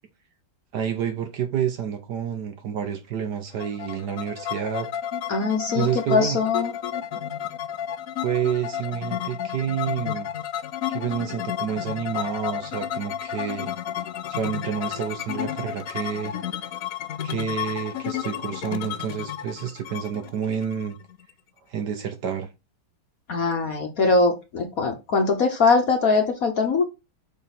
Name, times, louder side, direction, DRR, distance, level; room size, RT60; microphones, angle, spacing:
voice 1, 0.7-4.9 5.7-6.4 8.2-10.3 10.9-13.7 14.3-16.4 17.2-21.0 21.7-22.5, right 8 dB, 60° right, 1.4 m, -29 dB
sound 1, 3.6-21.3, left 10 dB, 85° left, 0.7 m, -32 dB
voice 2, 5.3-6.7 23.3-26.8, left 4 dB, 50° left, 1.2 m, -22 dB
7.3 x 3.4 x 4.2 m
omnidirectional pair, 2.3 m